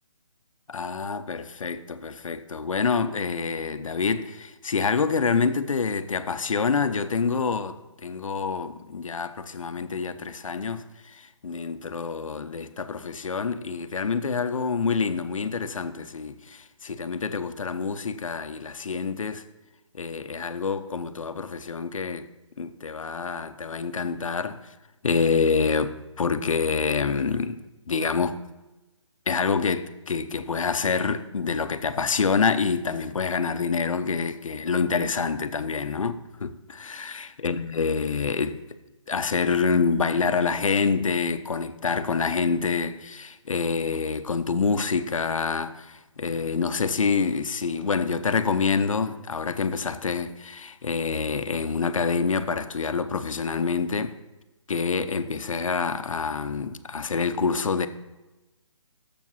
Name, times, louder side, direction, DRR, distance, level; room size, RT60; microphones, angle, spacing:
voice 1, 0.7-19.5 19.9-22.3 22.6-24.7 25.0-28.4 29.3-38.6 39.1-54.1 54.7-57.9, left 5 dB, 85° left, 0.7 m, -27 dB
7.4 x 7.2 x 5.7 m
hypercardioid pair, 175°, 17 cm